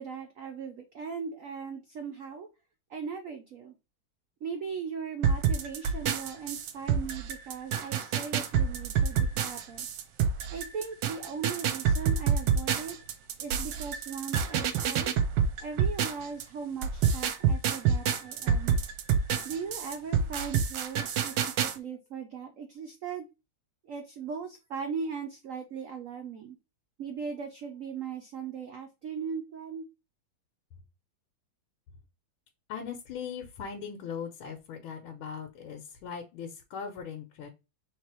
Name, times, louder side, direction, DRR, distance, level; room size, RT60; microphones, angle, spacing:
voice 1, 0.0-2.5 2.9-3.7 4.4-9.9 10.5-13.0 13.4-15.1 15.6-18.8 19.4-23.3 23.8-26.6 27.0-29.9, right 6 dB, 90° right, 4 dB, 0.7 m, -38 dB
sound 1, 5.2-16.4 16.8-21.8, right 7 dB, 70° right, 1.2 m, -27 dB
voice 2, 32.7-37.5, left 7 dB, 85° left, 3 dB, 1.5 m, -39 dB
3.2 x 3.2 x 4.5 m, 0.27 s
omnidirectional pair, 2.2 m